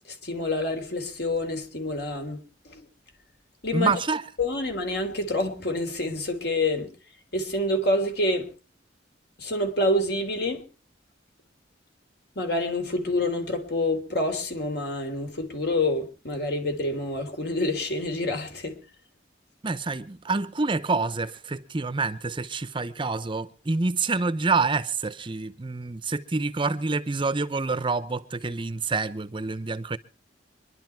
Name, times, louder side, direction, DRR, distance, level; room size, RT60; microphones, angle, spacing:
voice 1, 0.1-2.4 2.6-2.9 3.6-3.9 4.4-6.9 7.3-8.5 9.4-10.6 12.3-18.8, left 1 dB, 60° left, 3.3 m, -27 dB
voice 2, 3.7-4.2 19.6-30.0, right 3 dB, 30° right, 0.7 m, -27 dB
24.5 x 11.5 x 4.6 m
head